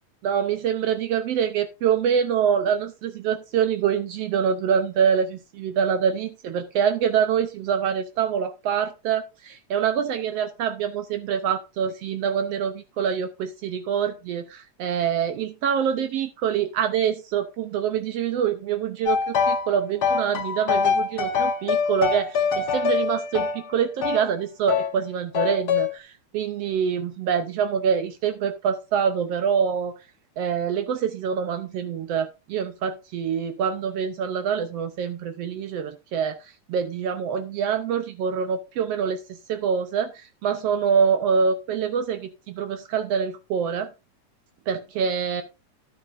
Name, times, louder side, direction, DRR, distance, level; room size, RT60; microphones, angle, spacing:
voice 1, 0.2-29.9 30.4-43.9 44.7-45.4, right 7 dB, 70° right, 9 dB, 1.6 m, -25 dB
sound 1, 19.1-19.7 20.0-24.3 24.7-24.9 25.3-25.9, left 6 dB, 90° left, 0.8 m, -24 dB
12.0 x 8.8 x 2.6 m, 0.26 s
omnidirectional pair, 3.3 m